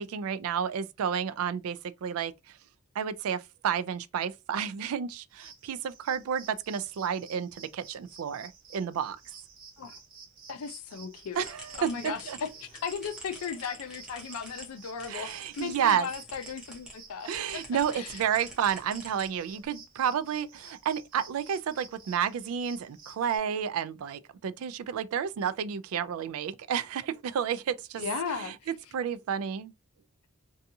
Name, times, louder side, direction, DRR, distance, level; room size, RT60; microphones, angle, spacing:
voice 1, 0.0-2.3 3.0-9.2 11.4-12.4 15.1-16.1 17.2-28.1 28.4-28.5 28.9-29.7, right 8 dB, 75° right, 0.3 m, -31 dB
sound 1, 5.3-23.4, right 5 dB, 45° right, 1.1 m, -52 dB
voice 2, 10.5-11.4 11.8-17.6 17.9-18.2 28.0-28.6, left 6 dB, 75° left, 0.4 m, -36 dB
sound 2, 11.3-16.9 17.3-19.7, right 1 dB, 5° right, 0.7 m, -48 dB
2.7 x 2.3 x 2.6 m
head